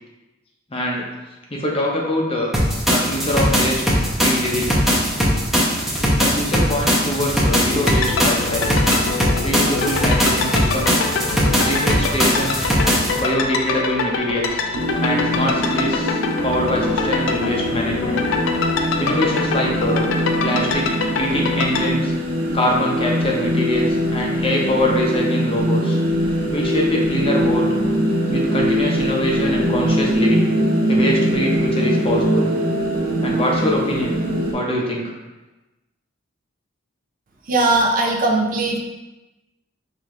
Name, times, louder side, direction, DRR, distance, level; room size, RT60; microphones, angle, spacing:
voice 1, 0.7-1.0 1.5-2.5 2.9-4.8 6.2-8.8 9.1-11.1 11.6-12.7 13.2-14.6 15.0-18.2 19.0-20.1 20.4-22.1 22.5-26.0 26.5-27.8 28.3-30.5 30.9-32.5 33.2-34.1 34.5-35.1, left 1 dB, 30° left, -2 dB, 0.7 m, -24 dB
sound 1, 2.5-13.2, equal, ahead, 0.8 m, -19 dB
sound 2, 7.7-21.9, left 4 dB, 70° left, 0.4 m, -25 dB
sound 3, 14.7-34.5, equal, 90° right, 1.1 m, -22 dB
voice 2, 37.4-38.8, right 2 dB, 45° right, 1 dB, 0.5 m, -19 dB
5.2 x 2.8 x 3.1 m, 1.1 s
head